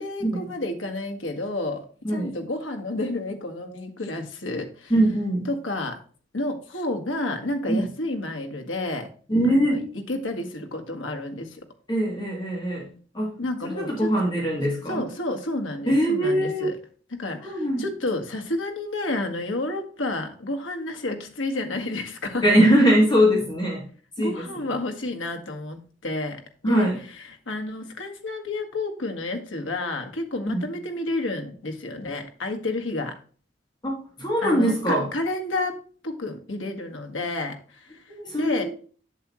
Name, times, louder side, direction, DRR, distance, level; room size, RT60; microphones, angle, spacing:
voice 1, 0.0-4.9 5.5-6.0 6.3-9.1 9.5-9.8 10.1-11.7 13.4-14.1 14.9-16.8 17.2-22.4 24.2-26.9 27.3-33.2 34.4-38.6, left 2 dB, 90° left, 4 dB, 1.7 m, -30 dB
voice 2, 4.9-5.5 7.7-7.8 9.3-9.8 11.9-12.9 13.1-13.3 13.6-15.1 15.9-16.7 17.4-17.8 22.4-23.8 24.2-24.7 26.6-27.0 30.5-30.6 33.8-35.1 38.1-38.6, equal, 25° left, -2 dB, 2.8 m, -22 dB
7.8 x 7.5 x 3.1 m, 0.41 s
head